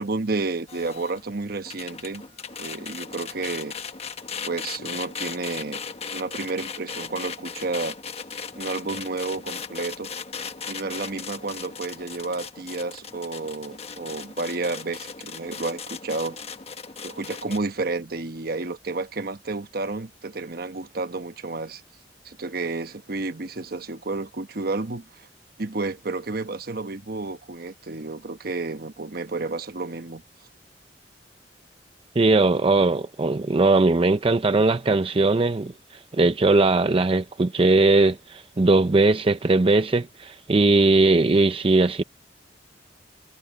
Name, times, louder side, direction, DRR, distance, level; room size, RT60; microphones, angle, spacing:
voice 1, 0.0-2.2 2.6-3.7 4.5-5.8 6.1-8.0 8.6-10.1 10.7-16.4 17.0-21.8 22.2-25.3 25.6-30.2, right 3 dB, 60° right, 1.1 m, -31 dB
sound 1, 0.7-17.6, left 6 dB, 35° left, 1.3 m, -37 dB
voice 2, 32.2-42.0, right 2 dB, 30° right, 0.5 m, -20 dB
head